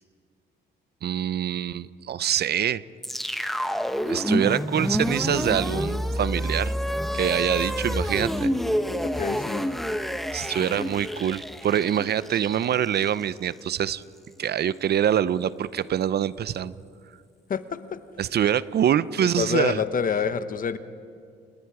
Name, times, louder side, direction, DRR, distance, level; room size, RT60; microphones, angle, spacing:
voice 1, 1.0-2.8 4.0-6.7 7.1-8.5 10.3-14.0 14.4-16.7 18.2-19.8, right 9 dB, 55° right, 17 dB, 0.6 m, -25 dB
sound 1, 3.0-13.2, equal, ahead, 1.1 m, -28 dB
voice 2, 9.0-9.7 10.6-10.8 17.5-18.0 19.2-20.8, left 6 dB, 45° left, 12 dB, 1.0 m, -28 dB
28.0 x 20.5 x 4.9 m, 2.3 s
cardioid pair, 90°, 20 cm